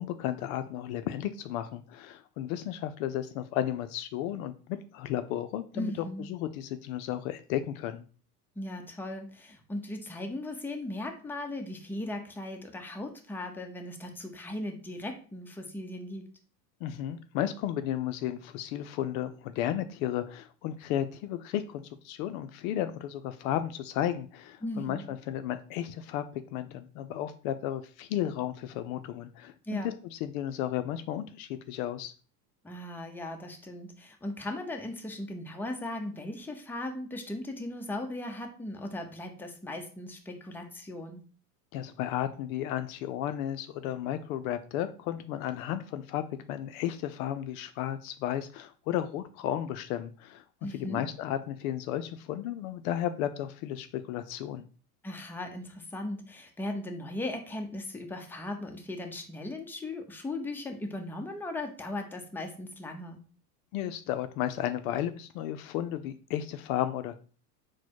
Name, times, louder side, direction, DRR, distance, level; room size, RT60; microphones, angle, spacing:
voice 1, 0.0-5.9 6.3-8.0 16.8-32.1 41.7-46.2 46.5-54.6 63.7-67.1, left 11 dB, 60° left, 10 dB, 0.5 m, -33 dB
voice 2, 5.7-6.3 8.6-16.3 24.6-25.1 29.6-29.9 32.6-41.2 50.6-51.1 55.0-63.2, left 1 dB, 5° left, 4 dB, 0.6 m, -38 dB
4.0 x 2.2 x 4.5 m, 0.39 s
hypercardioid pair, 95°, 47 cm